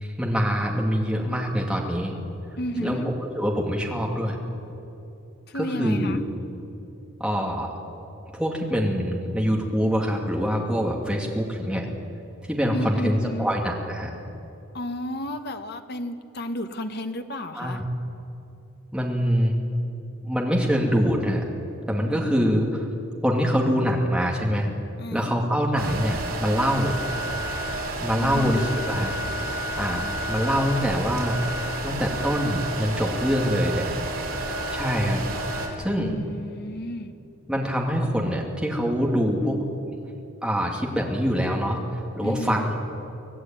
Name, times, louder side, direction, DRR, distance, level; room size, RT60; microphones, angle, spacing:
voice 1, 0.0-2.1 2.8-4.4 5.5-6.2 7.2-7.7 8.3-11.9 12.4-14.1 17.5-17.8 18.9-19.6 20.2-21.4 21.9-22.9 23.2-24.7 25.1-27.0 28.0-29.1 29.8-31.5 31.8-33.9 34.7-35.2 35.7-36.1 37.5-39.6 39.9-40.0 40.4-42.7, equal, 5° right, -1 dB, 2.6 m, -24 dB
voice 2, 2.6-3.1 5.5-6.2 12.7-13.5 14.7-17.8 25.0-25.3 28.2-28.7 35.9-37.1 42.2-42.6, equal, 45° left, 7 dB, 1.2 m, -32 dB
sound 1, 25.8-35.7, right 1 dB, 70° right, 4.2 m, -30 dB
25.0 x 16.5 x 9.3 m, 2.9 s
head